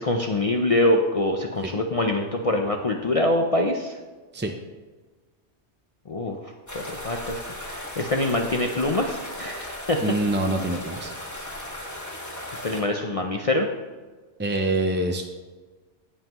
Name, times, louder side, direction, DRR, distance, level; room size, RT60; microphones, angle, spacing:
voice 1, 0.0-4.0 6.1-10.0 12.6-13.7, left 1 dB, 40° left, 2 dB, 0.6 m, -25 dB
sound 1, 6.7-12.8, left 1 dB, 15° left, 1.6 m, -36 dB
voice 2, 10.0-11.1 14.4-15.2, right 2 dB, 20° right, 3 dB, 0.3 m, -25 dB
16.5 x 5.6 x 3.0 m, 1.3 s
omnidirectional pair, 1.1 m